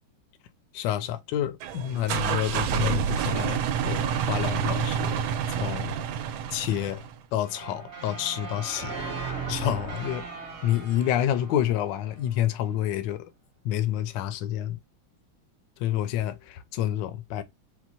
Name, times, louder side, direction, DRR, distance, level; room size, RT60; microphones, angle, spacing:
voice 1, 0.7-5.3 5.6-6.0 6.5-7.0 7.3-8.9 9.5-10.3 10.6-13.3 13.6-14.8 15.8-17.4, left 11 dB, 75° left, 1.2 m, -28 dB
sound 1, 1.6-7.2, right 8 dB, 80° right, 1.3 m, -28 dB
sound 2, 7.4-12.5, right 4 dB, 40° right, 1.2 m, -37 dB
4.5 x 2.2 x 4.0 m
omnidirectional pair, 2.2 m